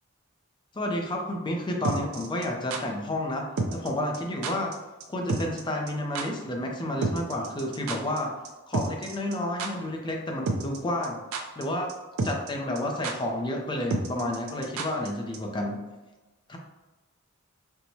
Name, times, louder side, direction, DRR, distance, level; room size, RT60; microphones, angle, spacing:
voice 1, 0.7-4.8 5.1-8.3 8.7-11.2 11.6-11.9 12.2-15.8 16.5-16.6, left 1 dB, 20° left, 1 dB, 0.5 m, -30 dB
sound 1, 1.8-2.8 3.6-3.9 4.1-4.2 4.4-4.7 5.0-5.1 5.3-5.6 5.9-6.0 6.1-6.2 7.0-8.2 8.4-8.5 8.7-9.3 9.6-9.7 10.5-10.8 11.0-11.6 11.9-12.0 12.2-12.5 12.7-12.8 13.0-13.1 13.9-15.1 15.3-15.4, right 3 dB, 70° right, 0.4 m, -30 dB
4.4 x 2.0 x 2.7 m, 1.1 s
head